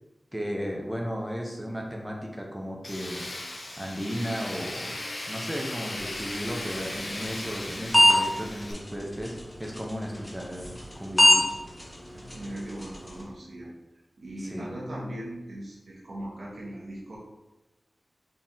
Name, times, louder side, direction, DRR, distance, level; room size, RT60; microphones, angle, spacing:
voice 1, 0.3-3.2 3.8-4.9 5.3-11.5 14.4-14.7, equal, 10° right, 0 dB, 0.7 m, -35 dB
Tools, 2.8-8.7, left 1 dB, 50° left, 0.7 m, -37 dB
sound 1, 5.9-13.2, equal, 15° left, 0.9 m, -27 dB
voice 2, 12.1-13.7 14.2-17.2, right 1 dB, 80° right, -5 dB, 1.2 m, -39 dB
4.1 x 2.8 x 3.7 m, 1.0 s
wide cardioid pair, 75°, 0 cm